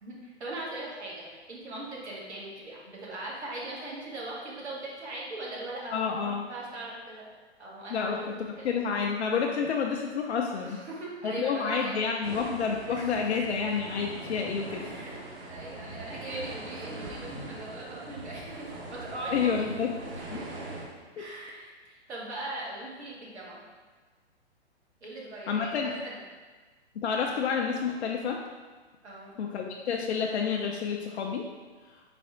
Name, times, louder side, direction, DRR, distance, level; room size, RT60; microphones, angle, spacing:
voice 1, 0.0-7.3 7.6-8.7 10.6-11.9 12.9-13.4 14.8-15.2 15.5-19.8 21.2-23.6 25.0-26.2 29.0-29.4, right 2 dB, 80° right, -4 dB, 1.4 m, -40 dB
voice 2, 5.9-6.5 7.9-8.2 8.6-10.8 11.2-14.8 19.3-19.9 20.3-20.4 25.5-25.9 27.0-28.4 29.4-31.4, left 6 dB, 70° left, 0 dB, 0.5 m, -29 dB
sound 1, 12.2-20.8, right 2 dB, 60° right, 1.1 m, -41 dB
4.1 x 2.3 x 4.3 m, 1.4 s
hypercardioid pair, 135°, 34 cm